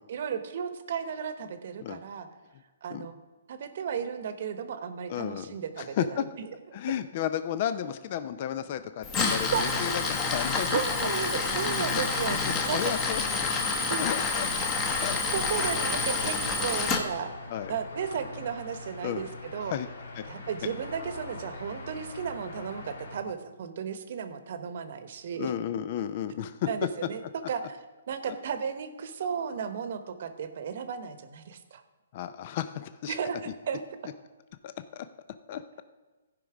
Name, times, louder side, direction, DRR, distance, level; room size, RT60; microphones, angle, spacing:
voice 1, 0.1-2.3 2.8-3.2 3.5-6.5 6.7-6.8 9.5-9.7 10.5-13.0 13.9-14.1 15.3-17.3 17.7-19.7 20.3-25.5 26.7-27.8 28.1-31.8 33.1-33.8, right 7 dB, 55° right, 10 dB, 1.0 m, -34 dB
voice 2, 5.1-6.2 6.7-10.8 11.7-11.9 12.2-13.4 14.0-14.5 15.0-15.2 17.5-17.7 19.0-19.2 19.7-19.9 20.1-20.2 20.6-20.7 25.4-26.7 28.3-28.4 32.1-33.2 33.5-33.6 34.6-35.1 35.5-35.8, left 10 dB, 40° left, 12 dB, 0.5 m, -33 dB
Tools, 9.0-17.0, left 4 dB, 20° left, 1.1 m, -28 dB
sound 1, 14.3-23.2, left 3 dB, 80° left, 2.1 m, -43 dB
15.0 x 5.3 x 4.9 m, 1.3 s
hypercardioid pair, 155°, 0 cm